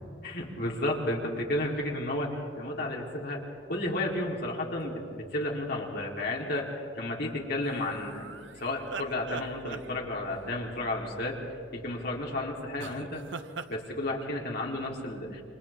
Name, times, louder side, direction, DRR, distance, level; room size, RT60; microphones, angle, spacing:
voice 1, 0.2-11.4 11.7-13.3 13.7-15.4, left 1 dB, 60° left, -2 dB, 3.7 m, -32 dB
sound 1, 7.6-10.4 12.8-13.7, right 5 dB, 80° right, 0.8 m, -41 dB
29.0 x 26.5 x 3.7 m, 2.5 s
head